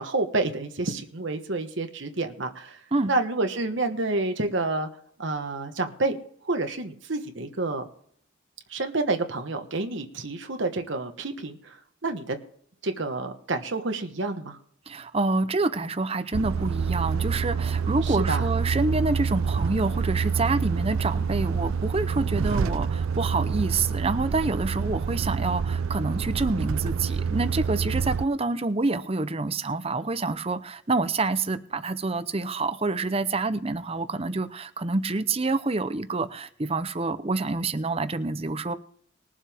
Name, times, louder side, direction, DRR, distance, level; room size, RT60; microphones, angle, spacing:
voice 1, 0.0-2.8 3.1-4.9 5.2-6.2 6.4-7.8 8.7-11.7 12.0-12.4 12.8-14.6 18.0-18.5, right 2 dB, 55° right, 1.2 m, -29 dB
voice 2, 14.9-38.7, right 3 dB, 30° right, 0.7 m, -27 dB
Truck, 16.3-28.3, right 6 dB, 75° right, 0.4 m, -27 dB
21.0 x 7.4 x 3.5 m
head